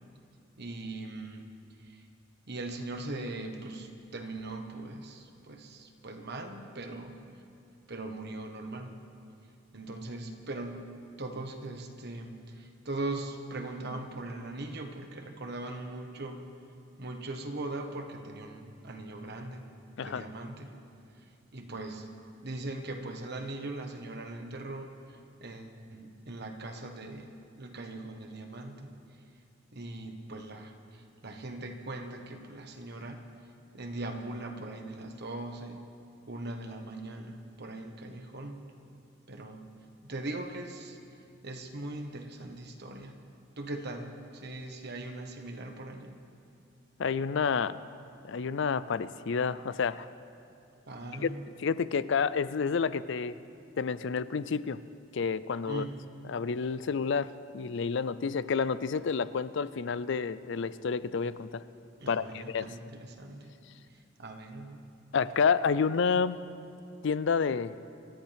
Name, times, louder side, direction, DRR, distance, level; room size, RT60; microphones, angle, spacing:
voice 1, 0.6-1.5 1.8-2.1 2.5-7.2 7.9-8.9 9.7-10.9 11.2-16.4 17.0-19.7 20.0-20.7 21.5-22.1 22.4-28.9 29.7-33.2 33.7-35.8 36.3-38.6 39.3-39.6 40.0-41.0 41.4-43.2 43.6-46.1 50.9-51.5 55.7-56.0 62.0-63.5 63.9-64.8, right 2 dB, 60° right, 4 dB, 1.4 m, -40 dB
voice 2, 47.0-47.8 48.2-50.1 51.2-51.3 51.6-53.4 53.8-54.8 55.1-55.8 56.3-61.6 62.1-62.7 65.1-66.4 67.0-67.7, left 5 dB, 65° left, 15 dB, 0.5 m, -29 dB
26.5 x 13.5 x 3.5 m, 2.6 s
head